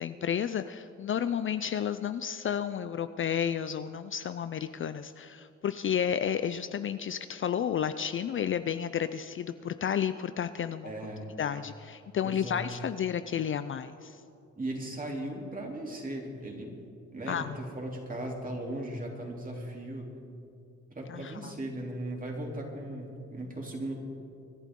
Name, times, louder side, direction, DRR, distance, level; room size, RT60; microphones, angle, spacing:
voice 1, 0.0-10.9 11.4-14.2 17.3-17.5 21.1-21.5, left 8 dB, 45° left, 12 dB, 0.5 m, -32 dB
voice 2, 10.8-11.3 12.2-12.6 14.6-16.8 17.1-20.1 20.9-23.9, right 1 dB, 30° right, -1 dB, 3.2 m, -37 dB
25.5 x 11.0 x 3.8 m, 2.5 s
cardioid pair, 90°, 30 cm